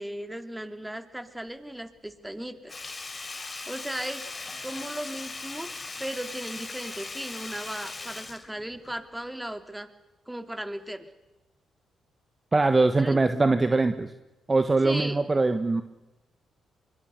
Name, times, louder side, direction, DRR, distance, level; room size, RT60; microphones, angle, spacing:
voice 1, 0.0-2.7 3.7-4.2 4.6-5.7 6.0-9.9 10.3-11.1 13.0-13.2 14.8-15.2, right 1 dB, 10° right, 9 dB, 3.0 m, -36 dB
Sink (filling or washing), 2.7-9.2 9.5-9.6, left 3 dB, 35° left, 4.2 m, -39 dB
voice 2, 12.5-14.1 14.5-15.8, right 3 dB, 30° right, 9 dB, 1.4 m, -22 dB
24.0 x 24.0 x 6.7 m, 1.1 s
hypercardioid pair, 45°, 0 cm